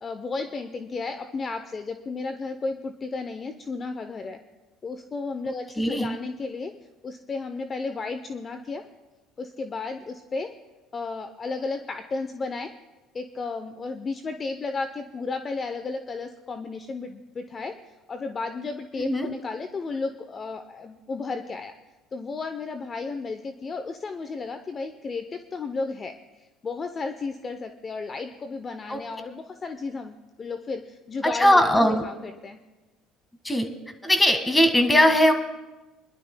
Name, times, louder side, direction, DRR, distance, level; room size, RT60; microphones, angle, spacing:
voice 1, 0.0-4.4 4.8-6.7 7.0-8.8 9.4-10.5 10.9-12.7 13.1-21.7 22.1-31.7 32.0-32.6, left 4 dB, 35° left, 8 dB, 0.6 m, -33 dB
voice 2, 5.8-6.2 19.0-19.3 28.9-29.0 31.2-32.0 33.4-33.7 34.0-35.3, equal, 10° left, 6 dB, 1.6 m, -20 dB
28.0 x 11.5 x 2.2 m, 1.1 s
supercardioid pair, 90°, 0 cm